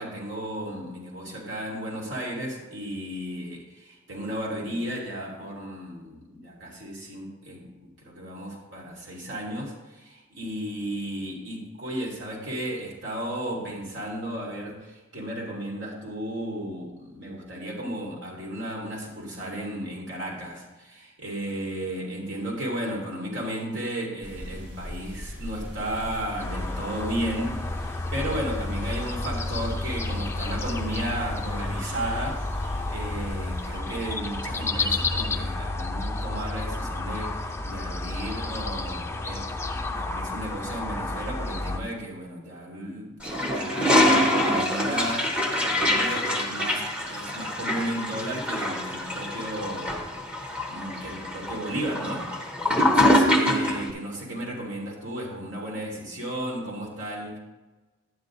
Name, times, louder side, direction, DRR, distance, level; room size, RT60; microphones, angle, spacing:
voice 1, 0.0-45.3 45.6-57.4, right 1 dB, 60° right, -3 dB, 3.0 m, -34 dB
sound 1, 24.2-33.8, equal, 90° right, 2.9 m, -40 dB
sound 2, 26.4-41.8, left 2 dB, 15° left, 0.5 m, -31 dB
Toilet flush, 43.2-53.9, left 1 dB, 5° right, 1.2 m, -25 dB
11.5 x 10.0 x 2.7 m, 1.2 s
head